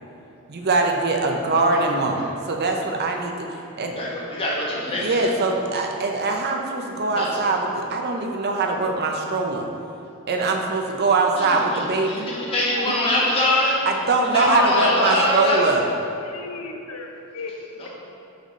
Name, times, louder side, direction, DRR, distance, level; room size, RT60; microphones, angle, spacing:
voice 1, 0.5-3.9 5.0-9.7 10.3-12.3 13.9-15.8, right 3 dB, 50° right, 2 dB, 0.6 m, -22 dB
voice 2, 3.9-5.3 7.1-7.5 11.3-13.7 14.3-15.7 17.8-17.9, left 1 dB, 25° left, -6 dB, 1.5 m, -24 dB
voice 3, 12.7-13.3 14.3-15.8 16.2-17.9, left 4 dB, 70° left, 3 dB, 0.6 m, -28 dB
6.0 x 4.3 x 5.2 m, 2.8 s
head